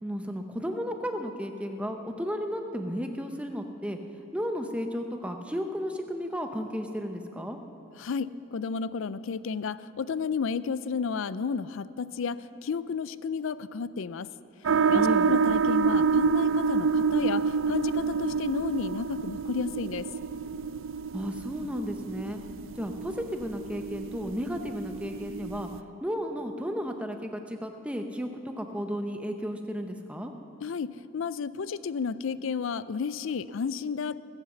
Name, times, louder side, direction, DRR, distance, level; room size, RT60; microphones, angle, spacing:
voice 1, 0.0-4.0 4.3-7.6 14.9-15.3 21.1-22.4 22.8-25.7 26.0-30.3, equal, 5° right, 5 dB, 0.7 m, -33 dB
voice 2, 8.0-14.3 14.9-20.1 30.6-34.2, left 5 dB, 70° left, 16 dB, 0.4 m, -32 dB
sound 1, 14.6-25.8, right 5 dB, 70° right, 0.4 m, -28 dB
20.5 x 8.1 x 7.0 m, 2.9 s
head